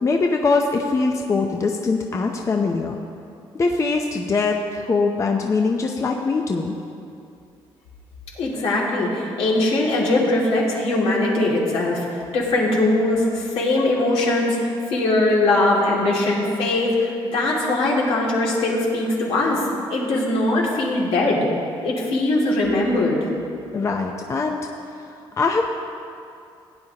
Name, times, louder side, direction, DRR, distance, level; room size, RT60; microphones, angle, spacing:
voice 1, 0.0-3.0 3.5-6.7 23.7-24.6 25.4-25.7, left 4 dB, 30° left, 2 dB, 0.7 m, -22 dB
voice 2, 8.4-19.6 19.9-21.5 21.8-23.2, left 2 dB, 80° left, -4 dB, 2.5 m, -21 dB
17.0 x 9.3 x 2.9 m, 2.5 s
cardioid pair, 115°, 10 cm